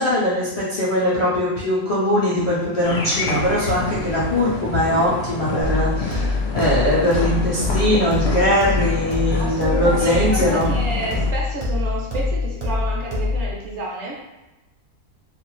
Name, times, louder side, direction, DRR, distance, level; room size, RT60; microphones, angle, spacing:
voice 1, 0.0-10.7, left 1 dB, 45° left, -9 dB, 0.4 m, -21 dB
sound 1, 2.8-11.3, left 3 dB, 70° left, 0.8 m, -28 dB
sound 2, 5.6-13.6, left 3 dB, 40° right, 0.4 m, -24 dB
voice 2, 6.0-6.3 9.4-14.2, right 2 dB, 65° right, -3 dB, 0.8 m, -30 dB
2.5 x 2.3 x 3.0 m, 1.0 s
omnidirectional pair, 1.5 m